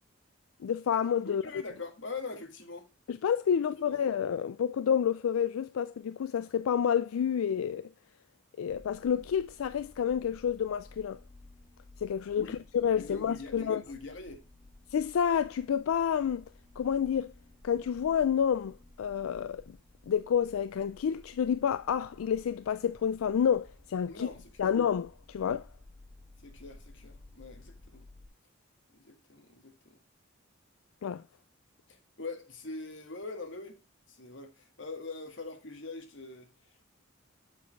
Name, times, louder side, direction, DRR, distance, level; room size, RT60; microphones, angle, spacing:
voice 1, 0.6-1.4 3.1-7.9 8.6-11.2 12.0-13.8 14.9-16.4 16.8-17.3 17.6-19.8 20.1-24.1 24.6-25.7 31.0-31.2, left 8 dB, 90° left, 0.3 m, -29 dB
voice 2, 1.3-2.9 3.8-4.0 12.4-12.6 12.9-14.4 24.1-24.7 26.4-28.1 28.9-30.0 31.9-33.8 34.1-36.5, left 3 dB, 60° left, 1.7 m, -43 dB
sound 1, 8.7-28.3, left 2 dB, 5° left, 2.5 m, -55 dB
7.1 x 6.4 x 3.4 m
head